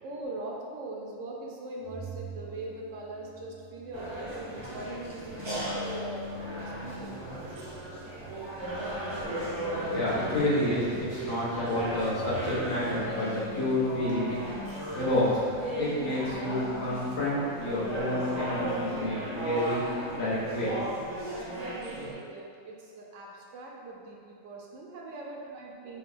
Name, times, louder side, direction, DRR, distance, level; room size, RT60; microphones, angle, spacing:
voice 1, 0.0-6.3 6.6-7.6 21.1-26.0, right 2 dB, 70° right, -2 dB, 0.9 m, -41 dB
Organ, 1.8-12.8, right 5 dB, 40° left, 1.1 m, -48 dB
sound 1, 3.9-22.1, right 1 dB, 30° right, 0.6 m, -36 dB
sound 2, 5.4-7.5 8.2-11.3 12.4-15.4 15.9-18.8, left 4 dB, 60° left, 0.6 m, -45 dB
voice 2, 9.6-14.4 14.9-15.4 15.8-19.8 20.1-20.8, left 1 dB, 80° left, -8 dB, 1.5 m, -29 dB
5.0 x 2.3 x 3.4 m, 2.2 s
omnidirectional pair, 1.4 m